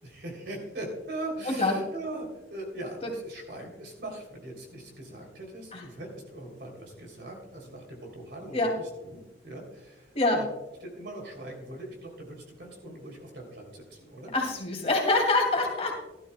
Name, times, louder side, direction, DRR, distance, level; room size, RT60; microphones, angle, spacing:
voice 1, 0.0-10.5 10.8-14.3, right 1 dB, 65° right, 2 dB, 3.1 m, -41 dB
voice 2, 1.5-1.8 5.7-5.8 8.5-8.7 10.1-10.4 14.3-16.0, left 2 dB, 35° left, 1 dB, 2.4 m, -25 dB
16.0 x 12.5 x 2.2 m, 0.99 s
head